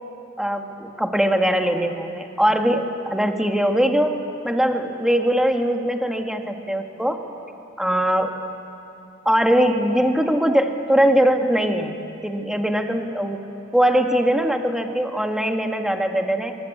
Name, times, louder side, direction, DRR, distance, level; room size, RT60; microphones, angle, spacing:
voice 1, 0.4-4.2 4.4-7.2 7.8-8.3 9.2-12.0 12.2-16.6, equal, 5° right, 4 dB, 1.5 m, -21 dB
23.0 x 22.0 x 8.4 m, 2.9 s
head